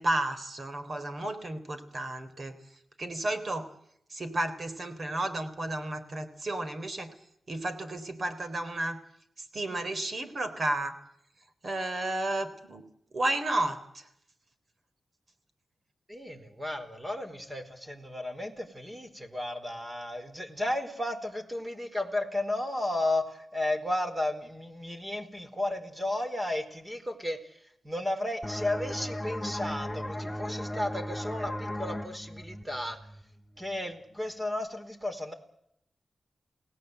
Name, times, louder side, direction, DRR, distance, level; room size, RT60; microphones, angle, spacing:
voice 1, 0.0-2.5 3.0-3.7 4.1-7.1 7.5-9.0 9.5-10.9 11.6-12.8 13.1-14.1, right 1 dB, 50° right, 10 dB, 3.8 m, -32 dB
voice 2, 16.1-27.6 27.8-33.0 33.6-35.3, left 1 dB, 15° right, 7 dB, 4.3 m, -33 dB
sound 1, 28.4-33.8, left 1 dB, 10° left, 1.1 m, -37 dB
28.5 x 18.0 x 8.1 m, 0.75 s
cardioid pair, 75°, 0 cm